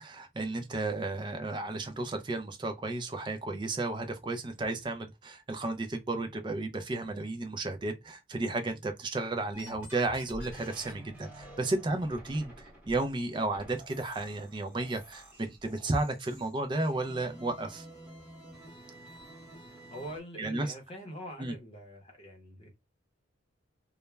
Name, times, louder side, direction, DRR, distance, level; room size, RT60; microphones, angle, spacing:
voice 1, 0.0-17.9 20.4-20.7 21.4-21.5, right 2 dB, 25° right, 0.3 m, -33 dB
sound 1, 9.5-20.2, right 1 dB, 5° right, 0.9 m, -49 dB
voice 2, 19.9-22.8, equal, 30° left, 0.7 m, -44 dB
2.3 x 2.1 x 3.1 m
head